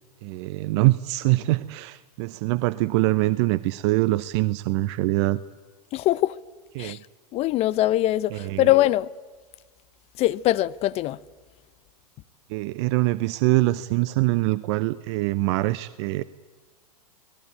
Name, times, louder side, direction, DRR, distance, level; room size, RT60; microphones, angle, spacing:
voice 1, 0.2-5.4 6.7-7.0 8.3-8.7 12.5-16.2, right 18 dB, 45° right, 0.7 m, -24 dB
voice 2, 5.9-6.4 6.8-7.0 7.3-9.1 10.2-11.2, left 15 dB, 30° left, 0.7 m, -22 dB
29.5 x 19.5 x 8.8 m
hypercardioid pair, 105°, 21 cm